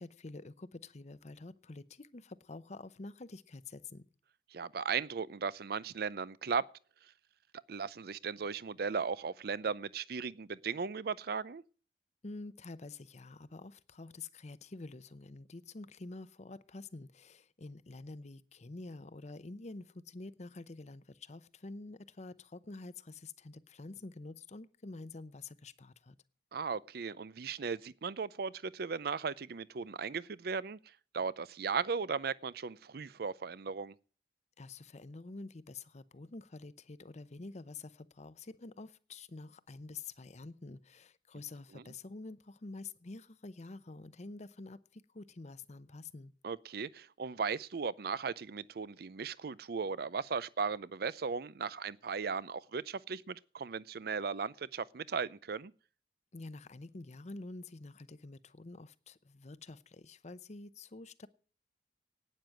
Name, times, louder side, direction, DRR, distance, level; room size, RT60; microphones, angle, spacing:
voice 1, 0.0-4.0 12.2-26.2 34.6-46.3 56.3-61.3, left 3 dB, 40° left, 0.7 m, -48 dB
voice 2, 4.5-6.6 7.7-11.6 26.5-30.8 31.1-33.9 41.7-41.8 46.4-55.7, right 5 dB, 60° right, 0.5 m, -37 dB
12.0 x 9.4 x 7.6 m
head